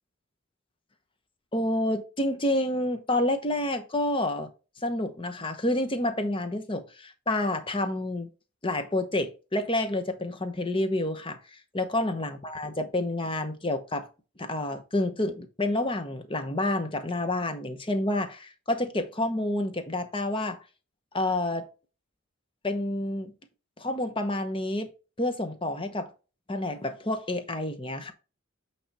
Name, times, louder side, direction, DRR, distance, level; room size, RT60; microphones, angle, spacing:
voice 1, 1.5-4.5 4.8-8.3 8.6-14.1 14.4-20.6 21.1-21.7 22.6-23.3 23.8-24.9 25.2-26.1 26.5-28.1, left 1 dB, 25° left, 0.9 m, -29 dB
8.6 x 3.4 x 4.2 m
head